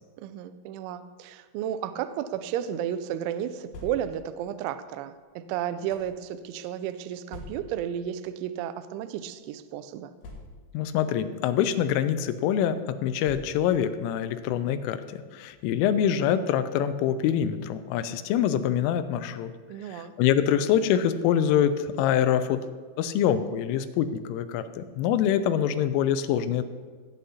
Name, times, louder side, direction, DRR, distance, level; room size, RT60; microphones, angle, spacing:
voice 1, 0.2-10.1 19.7-20.2, right 10 dB, 85° right, 12 dB, 2.7 m, -33 dB
sound 1, 3.7-4.4 5.2-6.2 7.3-7.9 8.8-8.9 9.2-9.3 10.2-10.9 11.7-12.0 13.2-13.9, left 2 dB, 60° left, 3.1 m, -45 dB
voice 2, 10.7-19.5 19.9-22.6 23.0-26.6, left 9 dB, 85° left, 11 dB, 3.1 m, -25 dB
18.0 x 8.5 x 2.8 m, 1.5 s
omnidirectional pair, 5.8 m